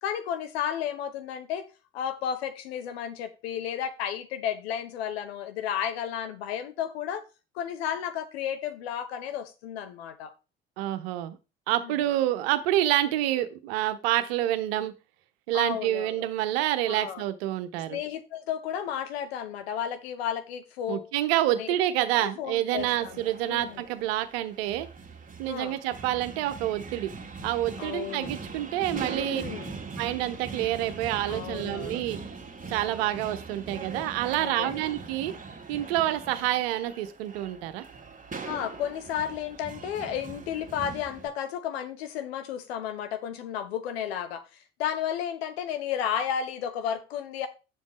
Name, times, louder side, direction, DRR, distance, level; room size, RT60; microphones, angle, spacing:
voice 1, 0.0-1.6 1.9-7.2 7.5-10.3 11.8-12.0 15.5-16.2 16.9-17.2 17.9-21.1 21.6-21.7 22.2-23.2 23.5-23.8 25.5-25.8 27.8-28.3 29.2-29.7 31.3-32.0 34.4-34.7 38.4-44.4 44.8-47.5, left 9 dB, 75° left, 1.1 m, -33 dB
voice 2, 10.8-11.4 11.7-14.9 15.5-18.0 20.9-24.9 25.4-27.1 27.4-29.4 30.0-32.2 32.7-35.3 35.7-37.8, right 13 dB, 70° right, 0.9 m, -28 dB
sound 1, 22.8-41.3, right 4 dB, 25° right, 1.9 m, -41 dB
9.1 x 7.2 x 3.1 m
figure-of-eight pair, 50°, 31 cm